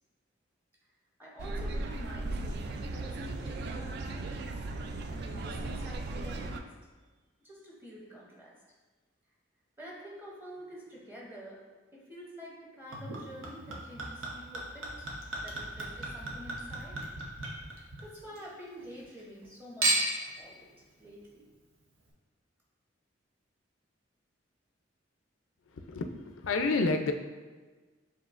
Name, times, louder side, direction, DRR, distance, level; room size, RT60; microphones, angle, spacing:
voice 1, 1.2-4.3 5.1-6.7 7.4-8.5 9.8-11.6 11.9-15.2 15.4-17.0 17.6-20.7 21.0-21.4, equal, 10° right, -4 dB, 0.7 m, -48 dB
sound 1, 1.4-6.6, right 2 dB, 55° right, 0.3 m, -37 dB
Chink clink / Liquid, 12.9-18.4 18.8-19.5 19.8-20.3 21.1-21.2, right 2 dB, 90° right, 0.9 m, -35 dB
voice 2, 25.7-27.1, left 3 dB, 85° left, 6 dB, 0.4 m, -29 dB
7.1 x 2.7 x 2.5 m, 1.3 s
head